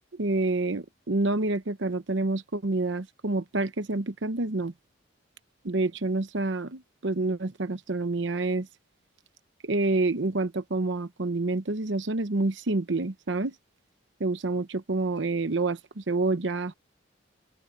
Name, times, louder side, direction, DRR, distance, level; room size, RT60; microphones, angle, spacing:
voice 1, 0.1-4.7 5.6-8.7 9.6-13.5 14.2-16.7, right 2 dB, 70° right, 0.9 m, -28 dB
open air
head